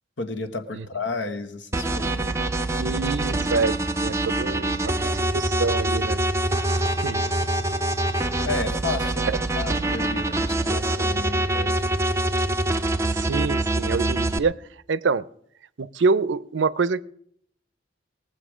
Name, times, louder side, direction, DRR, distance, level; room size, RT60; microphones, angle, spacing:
voice 1, 0.2-2.3 8.4-9.2 9.5-11.8, left 3 dB, 80° left, 9 dB, 1.4 m, -32 dB
sound 1, 1.7-14.4, right 2 dB, 15° right, 0.5 m, -25 dB
voice 2, 2.8-6.2 7.0-7.3 9.3-9.4 13.1-14.6 14.9-15.3 15.8-17.0, right 4 dB, 90° right, 19 dB, 0.5 m, -26 dB
20.5 x 7.7 x 5.0 m, 0.68 s
head